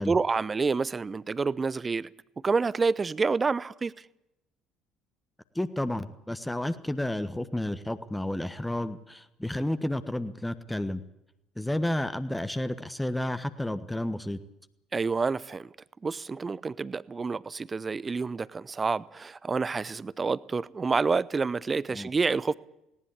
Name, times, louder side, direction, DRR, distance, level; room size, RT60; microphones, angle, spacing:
voice 1, 0.0-2.1 2.4-3.9 14.9-15.7 16.0-22.5, right 4 dB, 25° right, 0.7 m, -28 dB
voice 2, 5.5-11.0 11.6-14.4 21.9-22.1, left 1 dB, 5° left, 1.3 m, -31 dB
18.5 x 18.5 x 8.5 m
figure-of-eight pair, 55°, 0 cm